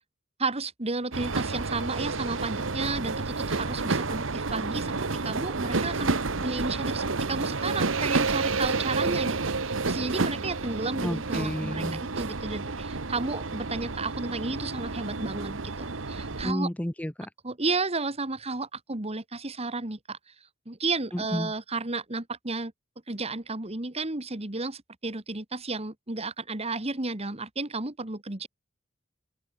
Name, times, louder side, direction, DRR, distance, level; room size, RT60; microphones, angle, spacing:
voice 1, 0.4-9.4 9.6-16.7 17.4-20.2 20.7-22.7 23.1-28.5, right 3 dB, 30° right, 2.0 m, -33 dB
sound 1, 1.1-16.5, right 3 dB, 80° right, 1.4 m, -30 dB
voice 2, 11.0-12.0 16.4-17.3 21.1-21.5, equal, 5° left, 0.7 m, -31 dB
open air
head